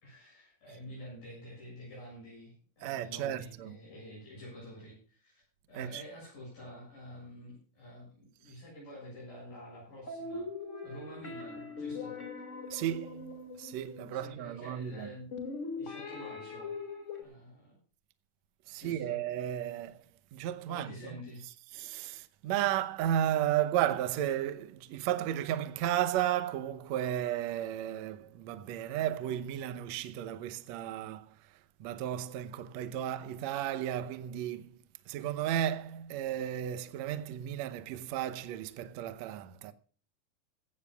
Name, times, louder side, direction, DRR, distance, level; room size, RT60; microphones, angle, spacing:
voice 1, 0.0-5.4 5.7-10.5 10.8-12.1 14.1-15.3 15.8-16.8 17.2-17.8 18.8-19.2 20.7-21.5, equal, 60° left, 8.9 m, -48 dB
voice 2, 2.8-3.8 5.7-6.0 12.7-15.1 18.7-20.0 20.3-20.9 21.7-31.5 31.8-34.8 35.1-39.7, right 11 dB, 85° right, 1.5 m, -34 dB
sound 1, 10.1-14.3 15.3-17.2, left 4 dB, 25° left, 1.9 m, -41 dB
16.5 x 15.5 x 2.4 m
omnidirectional pair, 4.3 m